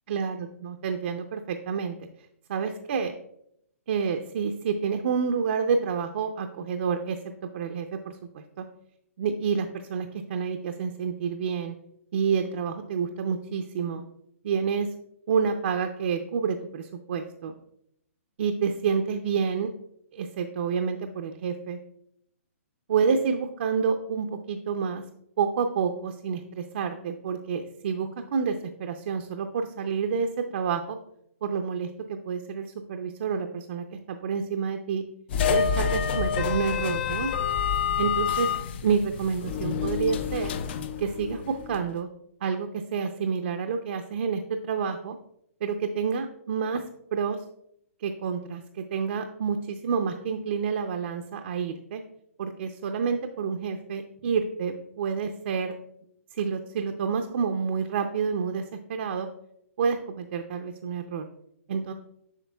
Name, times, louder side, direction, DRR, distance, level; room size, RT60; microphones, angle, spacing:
voice 1, 0.1-1.9 2.5-3.1 3.9-7.2 7.5-8.6 9.2-11.7 12.1-14.0 14.4-14.9 15.3-17.5 18.4-19.7 20.1-21.8 22.9-25.0 25.4-31.0 31.4-35.0 35.5-37.3 38.0-38.5 38.8-40.5 41.0-42.1 42.4-45.2 45.6-46.8 47.1-47.4 48.0-52.0 52.4-55.7 56.3-58.6 58.9-59.3 59.8-61.2 61.7-61.9, right 6 dB, 55° right, 5 dB, 0.5 m, -28 dB
sound 1, 35.3-41.8, left 7 dB, 45° left, 0.5 m, -28 dB
8.2 x 5.7 x 2.3 m, 0.74 s
hypercardioid pair, 140°, 8 cm